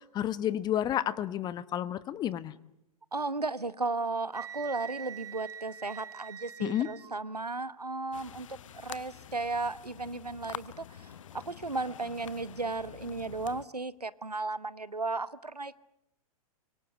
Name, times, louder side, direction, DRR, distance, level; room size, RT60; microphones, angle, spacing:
voice 1, 0.0-2.5 6.6-6.9, left 11 dB, 20° left, 18 dB, 1.0 m, -31 dB
voice 2, 3.1-15.8, right 3 dB, 85° right, 18 dB, 1.0 m, -35 dB
Wind instrument woodwind instrument, 4.3-7.1, right 8 dB, 15° right, 1.0 m, -44 dB
sound 1, 8.1-13.7, left 10 dB, 55° left, 1.0 m, -47 dB
25.5 x 24.0 x 8.8 m, 0.80 s
figure-of-eight pair, 105°, 20 cm